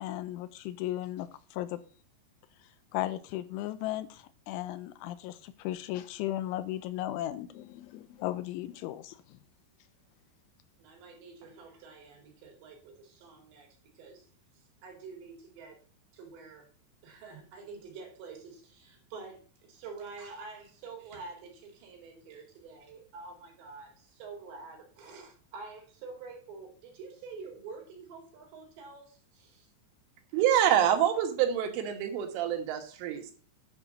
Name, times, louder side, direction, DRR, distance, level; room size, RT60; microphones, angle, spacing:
voice 1, 0.0-1.8 2.9-9.4, left 14 dB, 85° left, 3.1 m, -36 dB
voice 2, 10.8-13.7 13.9-14.3 14.5-15.8 16.1-16.7 17.0-29.7, right 4 dB, 65° right, 4.6 m, -47 dB
voice 3, 30.3-33.3, right 10 dB, 90° right, 3.9 m, -26 dB
10.5 x 4.7 x 6.5 m
omnidirectional pair, 5.5 m